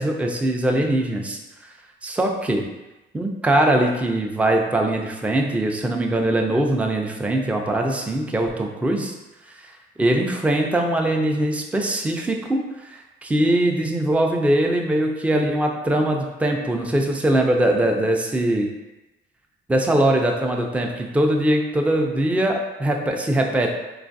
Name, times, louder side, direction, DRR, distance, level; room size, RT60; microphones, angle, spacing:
voice 1, 0.0-1.7 2.0-2.6 3.1-9.1 9.5-9.7 10.0-18.7 19.7-23.7, right 1 dB, 5° right, 2 dB, 0.3 m, -22 dB
3.8 x 2.4 x 2.5 m, 1.0 s
cardioid pair, 90°, 20 cm